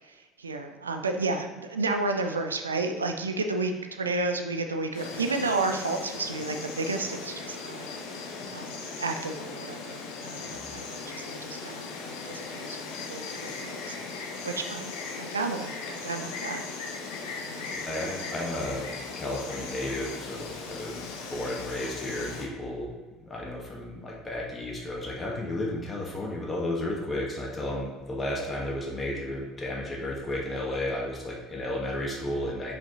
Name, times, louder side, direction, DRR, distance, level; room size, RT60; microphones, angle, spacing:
voice 1, 0.1-7.9 8.5-12.8 13.1-16.6 17.5-17.8, right 3 dB, 85° right, 6 dB, 0.5 m, -32 dB
Insect, 4.9-22.5, left 4 dB, 65° left, 0.9 m, -38 dB
voice 2, 17.7-18.9 19.2-21.0 21.3-22.9 23.2-32.8, left 1 dB, 25° left, -2 dB, 1.7 m, -33 dB
5.7 x 5.1 x 4.0 m, 1.3 s
figure-of-eight pair, 65°, 0 cm